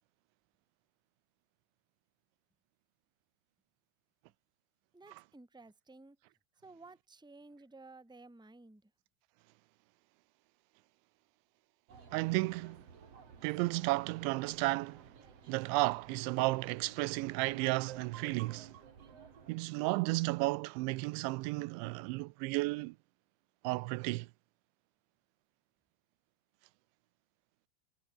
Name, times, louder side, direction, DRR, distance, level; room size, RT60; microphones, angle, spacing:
voice 1, 4.9-6.2 6.6-8.9, right 3 dB, ahead, 2.5 m, -55 dB
sound 1, 11.9-19.5, right 5 dB, 35° right, 3.9 m, -57 dB
voice 2, 12.1-12.8 13.4-15.1 15.5-18.8 19.5-23.0 23.6-24.3, right 23 dB, 85° right, 2.9 m, -33 dB
sound 2, 17.5-21.0, right 12 dB, 70° right, 3.7 m, -52 dB
omnidirectional pair, 5.2 m